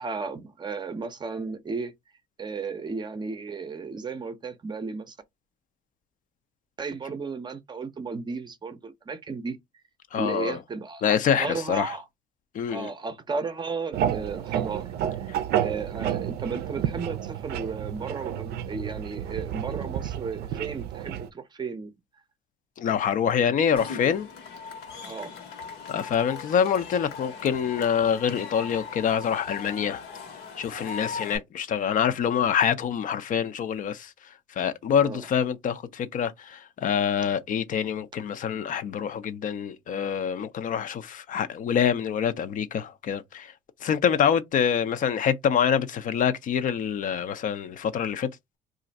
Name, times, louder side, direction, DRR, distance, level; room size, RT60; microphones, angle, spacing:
voice 1, 0.0-1.9 2.4-5.2 6.8-9.6 10.1-12.0 12.7-15.3 15.6-21.9 25.0-25.3 30.7-30.9 35.0-35.2, right 4 dB, 25° right, 0.6 m, -34 dB
voice 2, 10.1-10.6 11.0-11.9 12.5-12.9 22.8-24.3 25.9-30.0 30.6-34.1 34.6-43.5 43.8-48.3, left 8 dB, 50° left, 0.5 m, -26 dB
sound 1, 13.9-21.3, right 10 dB, 70° right, 0.4 m, -30 dB
Cheering / Crowd, 23.8-31.4, left 5 dB, 80° left, 1.2 m, -39 dB
2.5 x 2.4 x 4.0 m
cardioid pair, 110°, 17 cm